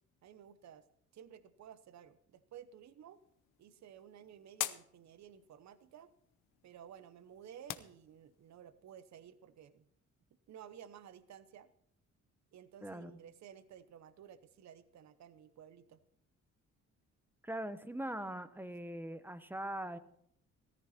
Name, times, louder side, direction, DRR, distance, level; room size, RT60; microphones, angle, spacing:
voice 1, 0.2-0.8 1.1-3.2 3.6-6.1 6.6-9.8 10.5-11.7 12.5-16.0, right 9 dB, 65° right, 14 dB, 0.9 m, -54 dB
sound 1, 3.1-8.6, left 14 dB, 85° left, 0.9 m, -47 dB
voice 2, 12.8-13.2 17.4-20.0, right 1 dB, 5° right, 12 dB, 1.0 m, -41 dB
14.5 x 14.0 x 4.2 m, 0.70 s
cardioid pair, 90°, 30 cm